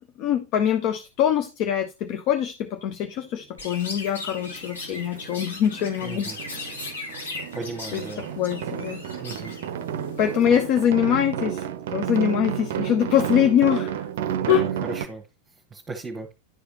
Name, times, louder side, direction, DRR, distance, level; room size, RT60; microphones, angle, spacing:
voice 1, 0.2-6.3 6.7-6.8 7.9-8.0 8.4-9.0 10.2-11.7 11.9-14.1 14.5-14.6, left 9 dB, 40° left, 0.7 m, -23 dB
Chirp tweet, 3.6-10.4, left 2 dB, 70° left, 2.8 m, -38 dB
sound 1, 3.8-3.9 4.3-5.5 5.7-15.1, right 9 dB, 55° right, 0.5 m, -31 dB
voice 2, 6.0-6.4 7.5-8.2 9.2-9.5 14.4-15.2 15.7-16.3, right 3 dB, 15° right, 1.2 m, -36 dB
11.0 x 4.9 x 2.9 m
figure-of-eight pair, 90°, 0 cm